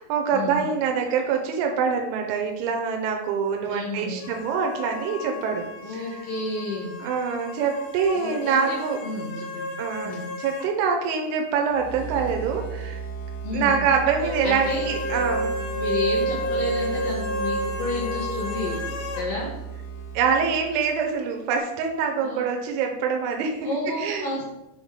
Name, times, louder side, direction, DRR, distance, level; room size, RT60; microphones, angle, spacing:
voice 1, 0.0-6.1 7.0-9.0 9.8-10.1 10.4-13.0 13.5-15.6 20.1-23.7 24.0-24.3, right 6 dB, 85° right, 3 dB, 3.1 m, -25 dB
voice 2, 3.7-4.3 5.8-7.0 8.2-9.7 10.0-10.3 13.4-13.8 14.4-14.9 15.8-18.8 19.1-19.5 22.2-22.5 23.6-24.4, left 2 dB, 65° left, -4 dB, 2.3 m, -31 dB
sound 1, 4.2-10.7 11.0-11.1 14.2-19.3, equal, 85° left, 3.3 m, -31 dB
sound 2, 11.7-21.2, right 4 dB, 50° left, 3.0 m, -35 dB
8.0 x 3.9 x 4.8 m, 0.98 s
omnidirectional pair, 5.5 m